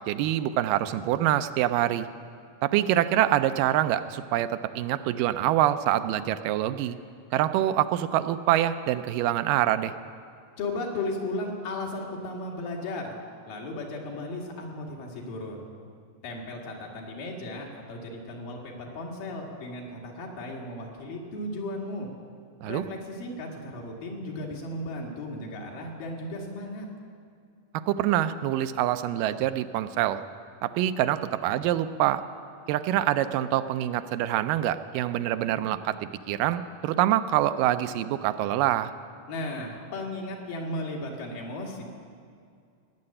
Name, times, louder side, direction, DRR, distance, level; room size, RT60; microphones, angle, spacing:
voice 1, 0.1-2.1 2.6-7.0 7.3-9.9 22.6-22.8 27.9-30.2 30.6-32.2 32.7-38.9, right 12 dB, 90° right, 11 dB, 2.3 m, -25 dB
voice 2, 10.6-13.1 13.5-15.7 16.2-22.1 22.7-26.9 39.3-41.8, left 2 dB, 85° left, -1 dB, 3.7 m, -35 dB
17.5 x 7.7 x 9.8 m, 2.3 s
omnidirectional pair, 3.8 m